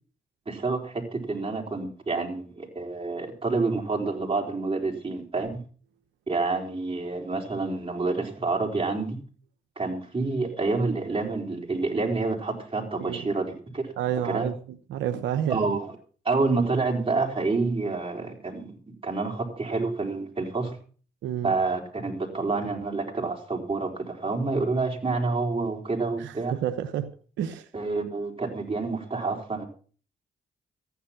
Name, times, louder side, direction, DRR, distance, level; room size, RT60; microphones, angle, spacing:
voice 1, 0.5-5.6 6.3-9.2 9.8-13.9 14.2-14.5 15.5-15.9 16.2-18.7 19.0-20.8 21.4-26.6 27.7-29.7, right 3 dB, 30° right, 0 dB, 4.3 m, -28 dB
voice 2, 14.0-14.5 14.9-15.6 21.2-21.5 26.2-27.1 27.4-27.7, right 10 dB, 90° right, 8 dB, 0.9 m, -29 dB
14.5 x 9.3 x 5.8 m, 0.42 s
supercardioid pair, 55°, 19 cm